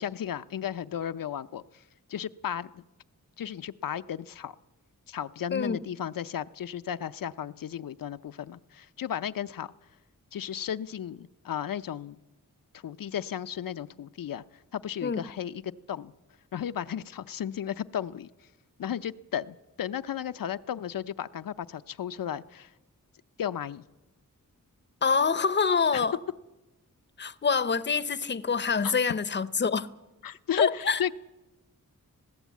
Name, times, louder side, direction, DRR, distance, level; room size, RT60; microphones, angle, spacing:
voice 1, 0.0-1.8 2.1-2.8 3.4-4.6 5.1-9.7 10.3-12.2 12.7-14.4 14.7-15.6 15.9-16.1 16.5-18.3 18.8-22.7 23.4-23.8 25.9-26.0 28.8-28.9 30.2-31.1, left 9 dB, 80° left, 0.6 m, -34 dB
voice 2, 25.0-26.2 27.2-29.9 30.6-31.0, left 5 dB, 35° left, 0.6 m, -26 dB
20.0 x 16.0 x 8.3 m
wide cardioid pair, 125°, 33 cm